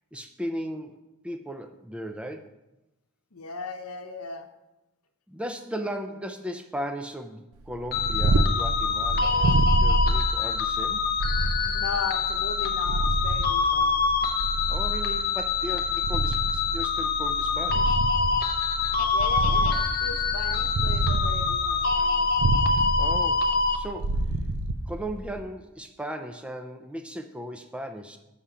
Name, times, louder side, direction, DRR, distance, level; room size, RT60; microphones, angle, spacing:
voice 1, 0.1-2.5 5.3-11.1 14.7-18.0 22.0-22.1 23.0-24.3 24.9-28.2, equal, 5° right, 6 dB, 0.4 m, -37 dB
voice 2, 3.3-4.5 11.6-14.0 19.1-22.4, left 4 dB, 80° left, 6 dB, 0.8 m, -37 dB
Purr, 7.7-25.4, right 2 dB, 80° right, 0.5 m, -28 dB
sound 1, 7.9-23.8, left 5 dB, 40° left, 0.5 m, -25 dB
7.0 x 5.6 x 5.0 m, 0.97 s
head